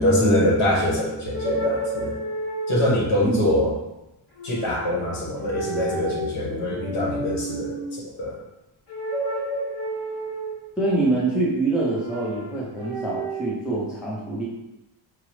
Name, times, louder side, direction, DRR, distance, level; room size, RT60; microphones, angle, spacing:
voice 1, 0.0-2.1 2.7-3.7 4.4-8.3, left 1 dB, 75° left, -3 dB, 1.2 m, -23 dB
sound 1, 1.2-3.1 4.4-5.1 5.4-6.3 6.7-7.9 8.9-10.7 11.8-13.5, right 1 dB, 50° left, 1.3 m, -30 dB
voice 2, 10.8-14.4, right 2 dB, ahead, -5 dB, 0.3 m, -25 dB
4.7 x 2.0 x 3.0 m, 0.95 s
cardioid pair, 175°, 50 cm